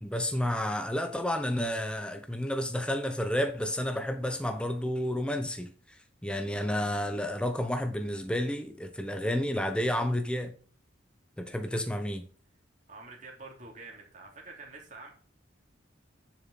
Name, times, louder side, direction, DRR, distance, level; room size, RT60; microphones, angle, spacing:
voice 1, 0.0-5.7 6.2-10.5 11.4-12.2, left 1 dB, 5° left, 0.8 m, -31 dB
voice 2, 12.9-15.1, right 3 dB, 40° right, 3.1 m, -47 dB
10.5 x 7.4 x 4.2 m
head